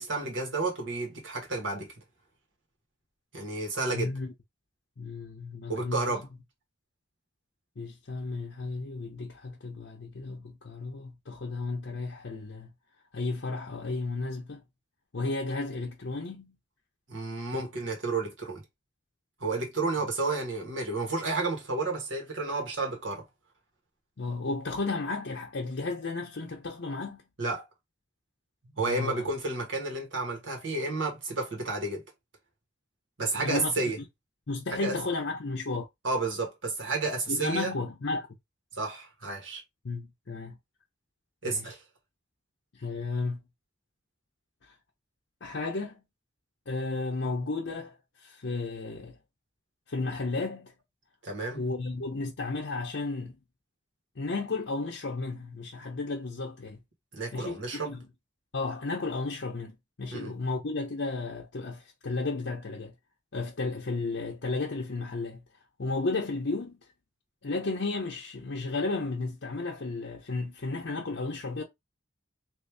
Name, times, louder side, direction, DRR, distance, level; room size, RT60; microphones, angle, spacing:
voice 1, 0.0-1.9 3.3-4.1 5.7-6.2 17.1-18.6 19.4-23.2 27.4-27.6 28.6-32.0 33.2-34.0 34.7-34.9 36.0-37.7 38.8-39.6 41.4-41.8 51.2-51.6 57.1-57.9 60.1-60.3, right 3 dB, 75° right, 1.5 m, -31 dB
voice 2, 3.9-4.3 5.0-6.2 7.8-12.7 13.1-14.6 15.1-16.6 17.6-17.7 24.2-27.2 28.8-29.3 33.3-33.7 34.5-35.9 37.3-38.3 39.8-40.6 41.5-41.7 42.7-43.4 44.6-44.7 45.4-46.0 46.7-49.2 49.9-50.7 51.6-53.4 54.2-56.8 57.3-58.0 58.5-62.9 63.3-65.4 65.8-66.8 67.4-71.6, left 3 dB, 65° left, 0.7 m, -33 dB
3.1 x 2.6 x 3.3 m
head